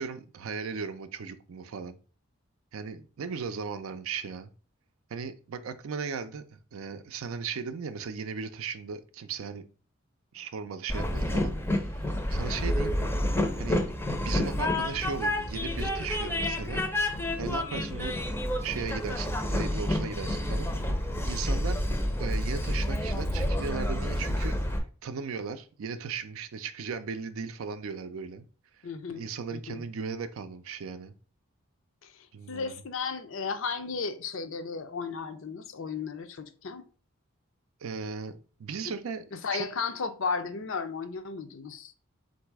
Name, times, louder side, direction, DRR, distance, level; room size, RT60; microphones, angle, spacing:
voice 1, 0.0-2.0 2.7-4.5 5.1-9.6 10.3-13.0 13.6-13.8 14.2-16.9 17.4-18.2 18.6-20.7 21.2-21.8 22.2-28.4 29.1-31.1 32.3-32.7 37.8-39.2 39.5-39.7, right 5 dB, 80° right, 0.4 m, -37 dB
Train, 10.9-24.8, left 1 dB, 10° left, 0.5 m, -29 dB
voice 2, 28.8-29.2 29.5-29.8 32.0-36.8 38.8-38.9 39.3-41.9, left 5 dB, 70° left, 0.5 m, -34 dB
3.9 x 2.6 x 4.6 m
head